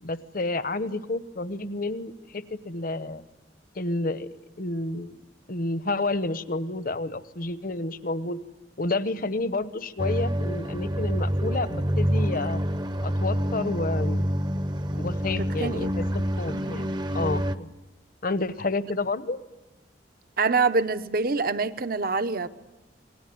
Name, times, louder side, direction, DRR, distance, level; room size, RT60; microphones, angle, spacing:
voice 1, 0.0-3.2 3.8-4.3 4.6-5.2 5.5-8.4 8.8-12.6 13.0-14.3 14.9-16.0 16.4-17.7 18.2-19.4, left 2 dB, 50° left, 13 dB, 1.0 m, -30 dB
sound 1, 10.0-17.6, equal, 25° right, 0.8 m, -27 dB
voice 2, 15.4-16.0 16.5-16.8 20.4-22.5, right 4 dB, 50° right, 12 dB, 0.9 m, -26 dB
28.5 x 20.0 x 9.5 m, 1.1 s
head